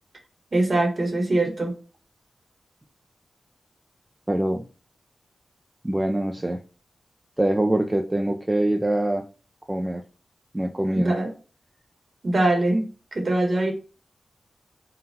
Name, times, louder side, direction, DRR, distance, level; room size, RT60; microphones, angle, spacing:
voice 1, 0.5-1.7 10.9-11.3 12.2-13.7, right 2 dB, 40° right, 3 dB, 1.2 m, -23 dB
voice 2, 4.3-4.6 5.8-6.6 7.4-9.3 9.7-10.0 10.5-11.1, right 1 dB, 15° right, 3 dB, 0.3 m, -24 dB
3.8 x 2.2 x 3.9 m, 0.36 s
wide cardioid pair, 130°, 0 cm